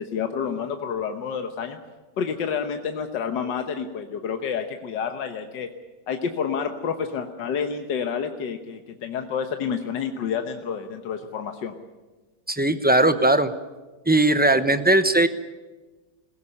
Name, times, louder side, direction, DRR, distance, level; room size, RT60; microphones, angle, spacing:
voice 1, 0.0-1.8 2.2-5.7 6.1-11.7, left 6 dB, 80° left, 6 dB, 1.8 m, -29 dB
voice 2, 12.5-13.5 14.1-15.3, right 2 dB, 10° right, 10 dB, 0.4 m, -19 dB
21.0 x 17.0 x 9.9 m, 1.2 s
omnidirectional pair, 1.9 m